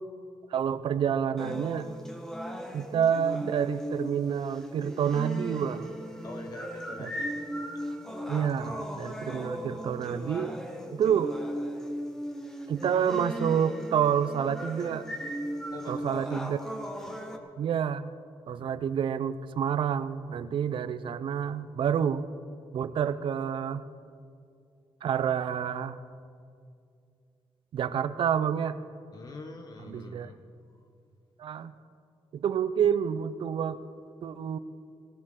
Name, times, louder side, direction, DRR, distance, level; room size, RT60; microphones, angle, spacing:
voice 1, 0.5-1.9 2.7-5.9 7.0-7.1 8.3-10.6 10.9-11.3 12.7-15.1 15.9-16.6 17.6-18.1 18.5-22.2 22.7-23.8 25.0-26.0 27.7-28.8 29.9-30.3 31.4-31.7 32.3-33.8 34.2-34.6, right 8 dB, 60° right, 13 dB, 0.6 m, -28 dB
sound 1, 1.4-17.4, equal, 5° left, 1.3 m, -37 dB
voice 2, 6.2-7.3 15.6-16.4 16.9-17.3 29.1-30.4 30.7-30.8, left 2 dB, 40° left, 4 dB, 1.0 m, -45 dB
18.0 x 17.0 x 3.8 m, 2.3 s
wide cardioid pair, 150°, 10 cm